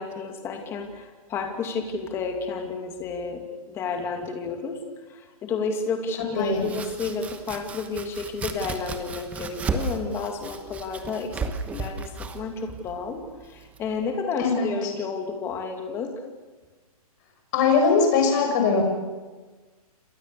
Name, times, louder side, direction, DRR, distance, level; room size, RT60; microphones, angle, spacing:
voice 1, 0.0-3.4 3.7-4.8 5.1-11.4 11.7-16.1, left 4 dB, 15° left, 4 dB, 2.5 m, -31 dB
voice 2, 6.4-6.7 14.4-14.7 17.5-18.8, left 5 dB, 30° left, 3 dB, 6.4 m, -21 dB
Domestic sounds home sounds, 6.4-14.1, right 4 dB, 5° right, 1.1 m, -35 dB
29.0 x 26.0 x 6.9 m, 1.3 s
hypercardioid pair, 170°, 19 cm